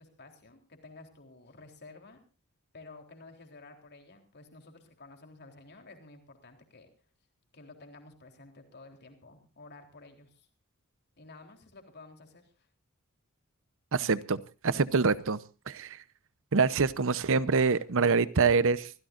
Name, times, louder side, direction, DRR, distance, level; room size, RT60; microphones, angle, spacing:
voice 1, 0.0-2.2 2.7-6.9 7.5-10.5 11.2-12.7, left 3 dB, 50° left, 3.7 m, -52 dB
voice 2, 13.9-15.4 15.7-16.0 16.5-18.9, right 4 dB, 60° right, 0.9 m, -25 dB
25.5 x 16.0 x 2.6 m
head